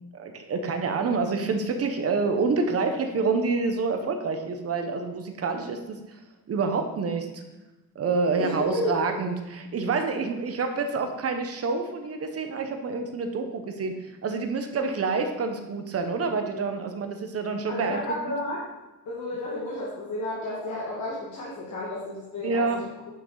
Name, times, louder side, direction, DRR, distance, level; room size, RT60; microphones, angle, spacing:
voice 1, 0.1-6.0 6.5-7.4 7.9-13.9 14.2-18.2 22.4-22.8, right 4 dB, 45° right, 5 dB, 1.0 m, -27 dB
voice 2, 8.4-9.1 17.7-18.6 19.1-22.9, left 1 dB, 55° left, -6 dB, 2.1 m, -32 dB
9.8 x 6.7 x 3.9 m, 1.0 s
cardioid pair, 160°, 35 cm